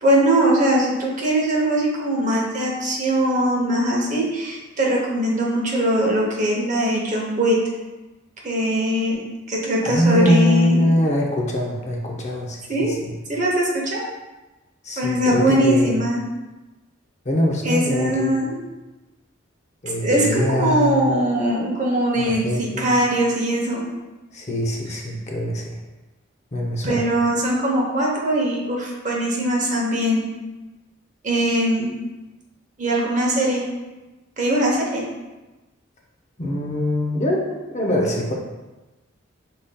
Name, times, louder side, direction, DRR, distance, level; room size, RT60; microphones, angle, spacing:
voice 1, 0.0-7.6 8.4-9.2 9.5-10.9 12.7-12.9 13.3-14.0 15.0-16.2 17.6-18.6 20.0-23.8 26.8-30.2 31.2-31.9 32.8-33.6 34.4-35.0, right 1 dB, 40° right, -2 dB, 0.8 m, -21 dB
voice 2, 9.8-13.1 14.8-16.0 17.2-18.6 19.8-21.2 22.2-23.0 24.3-25.7 26.5-27.1 36.4-38.3, left 1 dB, 35° left, -1 dB, 0.6 m, -23 dB
5.1 x 3.9 x 2.2 m, 1.1 s
head